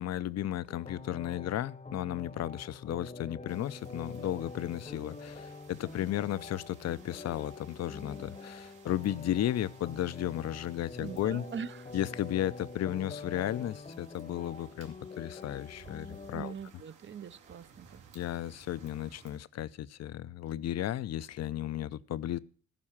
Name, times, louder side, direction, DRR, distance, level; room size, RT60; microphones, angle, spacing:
voice 1, 0.0-11.4 11.9-16.5 18.1-22.4, left 12 dB, 60° left, 17 dB, 0.6 m, -34 dB
sound 1, 0.7-16.5, left 3 dB, 20° left, 0.9 m, -46 dB
sound 2, 3.5-19.4, right 6 dB, 80° right, 2.6 m, -59 dB
voice 2, 11.0-11.9 16.3-18.0, right 7 dB, 40° right, 15 dB, 0.6 m, -42 dB
14.5 x 5.5 x 7.2 m, 0.42 s
cardioid pair, 90°, 30 cm